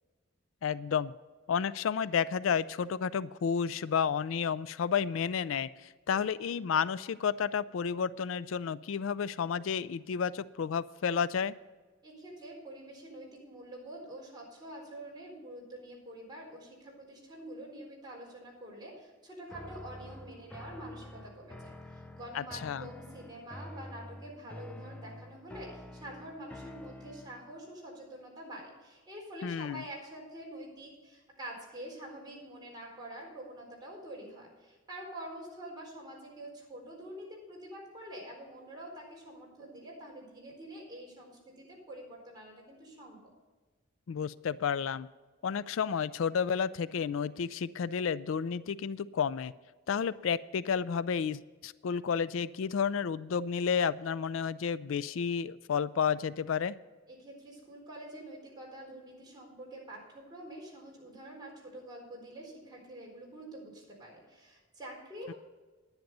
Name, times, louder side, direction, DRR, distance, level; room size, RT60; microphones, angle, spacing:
voice 1, 0.6-1.1 1.5-11.5 22.3-22.9 29.4-29.8 44.1-45.1 45.4-49.5 49.9-56.8, left 7 dB, 80° left, 17 dB, 0.4 m, -31 dB
voice 2, 12.0-43.2 49.9-50.0 57.1-65.3, right 1 dB, 20° right, -3 dB, 4.2 m, -46 dB
sound 1, 19.5-27.6, left 1 dB, 5° left, 0.6 m, -48 dB
10.5 x 10.5 x 5.4 m, 1.3 s
head